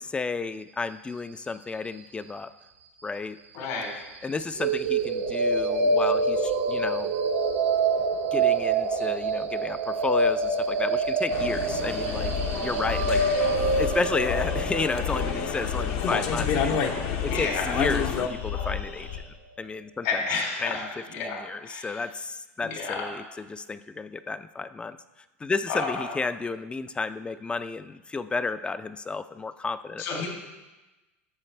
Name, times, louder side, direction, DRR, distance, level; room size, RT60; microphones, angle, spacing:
voice 1, 0.0-2.5 3.0-3.4 4.2-7.1 8.3-12.3 12.6-13.2 13.8-16.8 17.2-19.2 19.6-20.2 20.6-25.0 25.4-30.3, left 4 dB, 15° left, 13 dB, 0.4 m, -32 dB
voice 2, 3.5-3.9 17.2-17.7 20.0-20.8 21.1-21.4 21.7-22.0 22.6-23.1 25.7-26.1 30.0-30.3, left 4 dB, 75° left, 0 dB, 3.1 m, -30 dB
sound 1, 4.6-18.6, right 3 dB, 80° right, 0.8 m, -26 dB
sound 2, 11.3-18.3, left 7 dB, 55° left, 0.8 m, -31 dB
sound 3, 11.8-19.2, left 8 dB, 90° left, 2.1 m, -33 dB
11.5 x 6.8 x 3.3 m, 1.1 s
hypercardioid pair, 95°, 7 cm